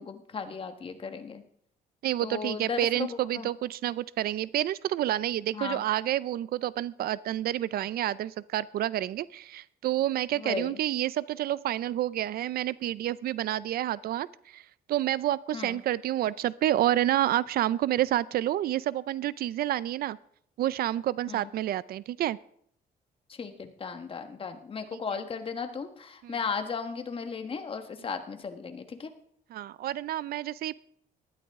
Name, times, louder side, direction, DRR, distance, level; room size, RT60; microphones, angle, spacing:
voice 1, 0.0-1.4 2.2-3.5 5.5-5.8 10.3-10.8 15.5-15.8 21.3-21.5 23.3-29.1, left 5 dB, 35° left, 7 dB, 1.4 m, -36 dB
voice 2, 2.0-14.6 14.9-20.2 20.6-22.4 24.9-25.0 26.2-26.3 29.5-30.7, right 13 dB, 65° right, 19 dB, 0.4 m, -29 dB
19.0 x 12.5 x 3.6 m, 0.66 s
cardioid pair, 130°, 17 cm